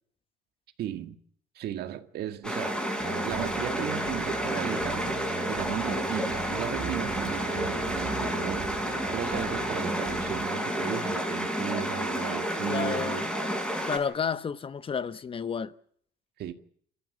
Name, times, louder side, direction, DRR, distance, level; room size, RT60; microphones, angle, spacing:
voice 1, 0.8-1.2 1.6-13.3 16.4-16.5, right 11 dB, 70° right, 1.9 m, -36 dB
sound 1, 2.4-14.0, equal, 5° left, 6.1 m, -30 dB
sound 2, 3.0-10.5, right 8 dB, 45° right, 1.5 m, -40 dB
voice 2, 12.7-13.3 13.9-15.7, left 6 dB, 30° left, 1.1 m, -31 dB
27.5 x 14.5 x 8.5 m
cardioid pair, 110°, 17 cm